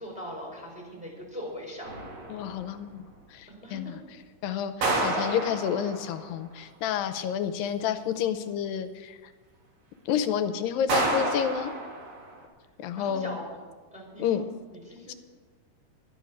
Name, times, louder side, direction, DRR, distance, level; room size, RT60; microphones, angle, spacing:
voice 1, 0.0-1.9 3.5-4.0 12.9-13.6 13.9-15.1, equal, ahead, -4 dB, 4.0 m, -41 dB
sound 1, 1.8-2.7 4.8-6.3 10.9-12.4, right 2 dB, 65° right, 3.9 m, -30 dB
voice 2, 2.3-4.0 4.4-9.2 10.1-11.7 12.8-13.4 14.2-14.4 15.1-15.2, left 8 dB, 90° left, 9 dB, 2.5 m, -30 dB
12.5 x 10.5 x 6.2 m, 1.4 s
omnidirectional pair, 4.0 m